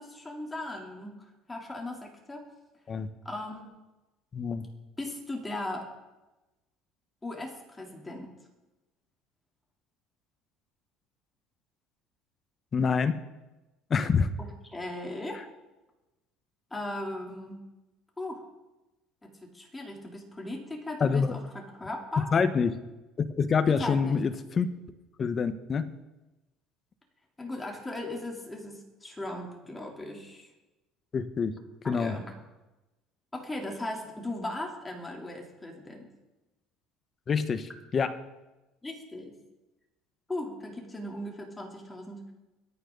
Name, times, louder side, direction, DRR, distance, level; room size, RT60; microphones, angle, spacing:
voice 1, 0.0-2.4 3.3-3.7 5.0-5.9 7.2-8.3 14.4-15.4 16.7-17.7 18.2-18.4 19.2-22.3 23.7-24.2 27.4-30.5 31.8-32.3 33.3-36.1 38.8-39.4 40.3-42.3, left 1 dB, 15° left, 0 dB, 3.4 m, -38 dB
voice 2, 4.3-4.7 12.7-13.2 13.9-14.3 21.0-21.3 22.2-22.8 23.2-24.7 25.2-25.9 31.1-31.6 31.9-32.2 37.3-38.2, left 5 dB, 35° left, 9 dB, 1.2 m, -26 dB
24.5 x 9.5 x 4.0 m, 1.0 s
supercardioid pair, 110°, 0 cm